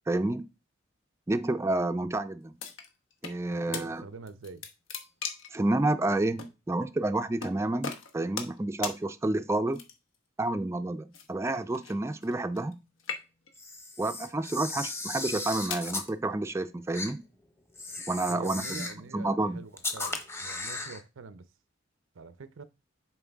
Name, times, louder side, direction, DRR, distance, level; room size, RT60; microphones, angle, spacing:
voice 1, 0.1-0.5 1.3-2.6 3.2-4.0 5.5-9.8 10.4-12.7 14.0-17.2 18.1-18.9 19.1-19.6, right 2 dB, 15° right, 0.4 m, -29 dB
sound 1, 2.6-3.4 3.7-3.9 4.3-5.6 6.4-6.5 7.4-7.5 7.8-8.6 8.8-9.0 9.7-10.2 11.1-12.7 13.0-13.6 14.3-14.5 15.2-15.9, left 6 dB, 80° left, 1.1 m, -38 dB
voice 2, 3.5-4.7 18.3-21.5 22.1-22.6, right 4 dB, 90° right, 0.6 m, -45 dB
Camera, 13.5-16.1 16.9-17.1 17.7-19.0 19.8-21.0, left 2 dB, 15° left, 0.8 m, -36 dB
7.5 x 4.6 x 3.5 m
head